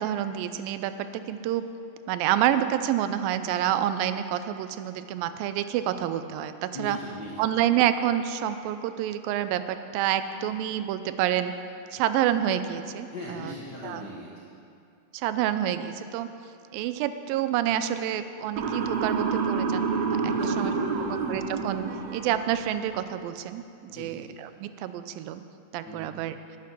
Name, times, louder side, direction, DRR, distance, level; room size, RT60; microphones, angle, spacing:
voice 1, 0.0-1.7 2.1-7.0 7.4-11.5 11.9-13.1 13.4-13.5 13.8-14.1 15.1-16.3 16.7-19.9 20.2-20.7 21.1-21.9 22.1-23.6 23.9-25.4 25.7-26.4, right 11 dB, 85° right, 11 dB, 2.3 m, -28 dB
voice 2, 6.7-7.5 13.1-14.5 20.2-21.2 23.9-24.2 25.8-26.1, left 1 dB, 65° left, -6 dB, 1.0 m, -39 dB
Motor vehicle (road) / Siren, 18.6-22.7, right 5 dB, 70° right, 1.8 m, -28 dB
9.5 x 9.3 x 6.1 m, 2.5 s
omnidirectional pair, 4.0 m